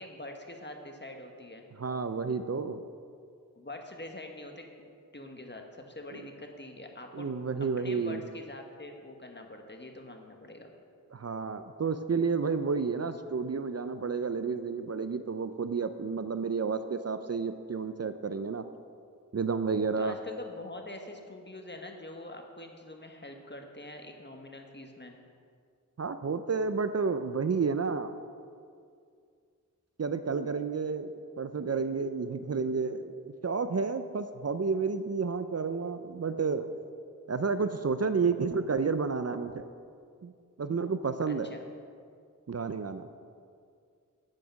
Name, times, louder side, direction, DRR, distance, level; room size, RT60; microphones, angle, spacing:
voice 1, 0.0-1.6 3.5-7.3 7.8-10.7 20.0-25.2 41.2-41.6, left 1 dB, 35° left, 3 dB, 1.3 m, -45 dB
voice 2, 1.8-2.8 7.1-8.2 11.1-18.7 19.3-20.2 26.0-28.1 30.0-36.7 37.3-39.7 40.2-40.3 40.6-41.5 42.5-43.1, right 5 dB, 50° right, 10 dB, 0.5 m, -31 dB
8.9 x 8.4 x 5.9 m, 2.2 s
wide cardioid pair, 50°, 33 cm